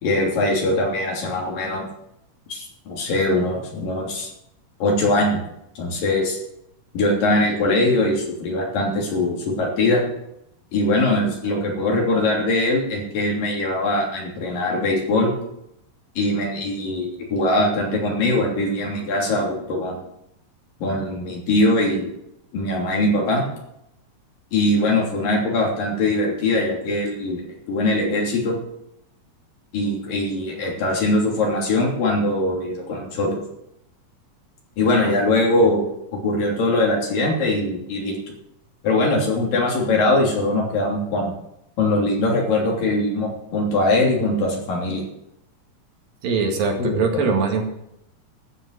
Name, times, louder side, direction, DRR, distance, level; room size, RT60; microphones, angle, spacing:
voice 1, 0.0-1.9 2.5-4.3 4.8-5.4 5.8-6.4 6.9-10.0 10.7-15.3 16.2-20.0 20.8-22.1 22.5-23.4 24.5-27.4 27.7-28.5 29.7-33.4 34.8-35.9 36.1-38.1 38.8-41.3 41.8-45.0 46.8-47.0, left 2 dB, 80° left, -1 dB, 4.8 m, -21 dB
voice 2, 46.2-47.6, right 5 dB, 90° right, 2 dB, 3.9 m, -22 dB
13.0 x 7.8 x 8.2 m, 0.82 s
omnidirectional pair, 3.9 m